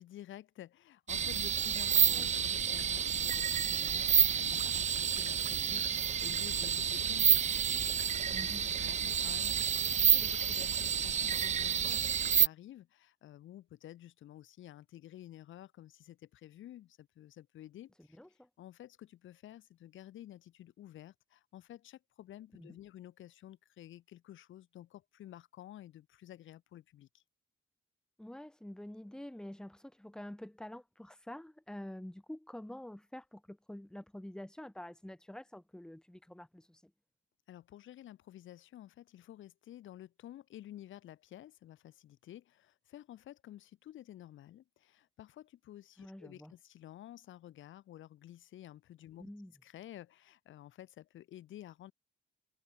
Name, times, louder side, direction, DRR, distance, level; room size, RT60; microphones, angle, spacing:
voice 1, 0.0-18.2 18.6-27.2 37.5-49.3 49.6-51.9, left 13 dB, 75° left, 2.5 m, -52 dB
sound 1, 1.1-12.5, right 8 dB, 35° right, 0.5 m, -29 dB
voice 2, 2.0-2.3 8.3-8.7 18.0-18.5 22.6-22.8 28.2-36.9 46.0-46.5 49.2-49.5, left 1 dB, 5° left, 1.8 m, -47 dB
cardioid pair, 90°, 20 cm